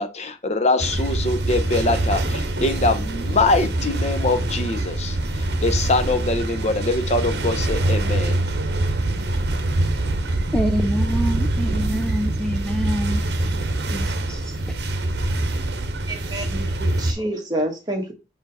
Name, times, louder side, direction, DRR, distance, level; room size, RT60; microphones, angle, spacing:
voice 1, 0.0-2.2 2.6-5.1 5.6-8.3, left 2 dB, 35° left, 0.8 m, -23 dB
sound 1, 0.8-17.1, right 2 dB, 65° right, 0.9 m, -24 dB
voice 2, 10.5-13.6 13.9-14.6, equal, 5° left, 0.4 m, -26 dB
voice 3, 16.1-18.1, right 1 dB, 20° right, 1.4 m, -28 dB
5.6 x 4.7 x 4.2 m
head